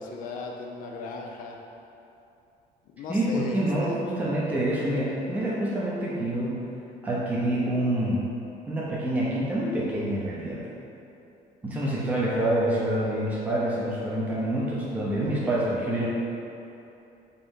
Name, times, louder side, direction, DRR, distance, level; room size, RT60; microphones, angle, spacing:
voice 1, 0.0-1.6 2.9-4.0, left 3 dB, 60° left, 1 dB, 0.4 m, -37 dB
voice 2, 3.1-6.5 7.0-8.3 8.7-10.6 11.6-16.1, right 1 dB, 10° right, -6 dB, 0.5 m, -27 dB
3.9 x 2.6 x 3.6 m, 2.8 s
cardioid pair, 155°, 16 cm